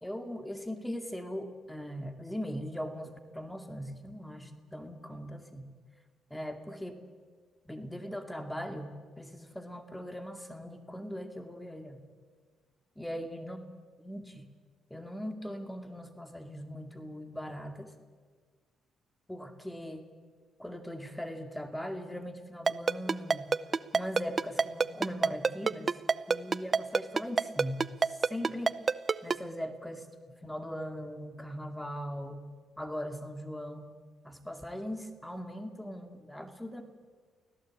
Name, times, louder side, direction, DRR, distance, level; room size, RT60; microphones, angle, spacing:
voice 1, 0.0-5.7 6.3-7.0 7.7-8.9 9.2-12.0 13.0-13.6 14.0-14.5 14.9-17.9 19.3-20.0 20.6-23.5 23.9-25.9 26.3-28.7 29.2-30.1 30.4-32.4 32.8-33.9 34.2-36.8, equal, 5° left, 7 dB, 2.2 m, -40 dB
Ringtone, 22.7-29.4, right 4 dB, 35° right, 0.7 m, -25 dB
24.5 x 16.5 x 8.7 m, 1.5 s
cardioid pair, 90°, 0 cm